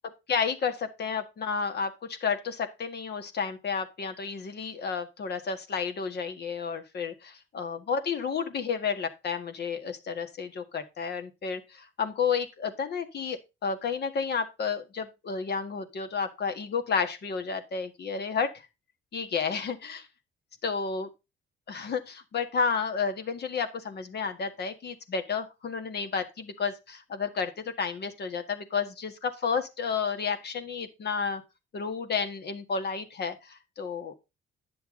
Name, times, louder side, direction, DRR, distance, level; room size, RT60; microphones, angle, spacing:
voice 1, 0.3-18.5 19.1-20.1 20.6-21.1 21.7-31.4 31.7-34.1, left 5 dB, 55° left, 7 dB, 1.7 m, -31 dB
10.5 x 7.0 x 3.8 m, 0.25 s
cardioid pair, 90°, 20 cm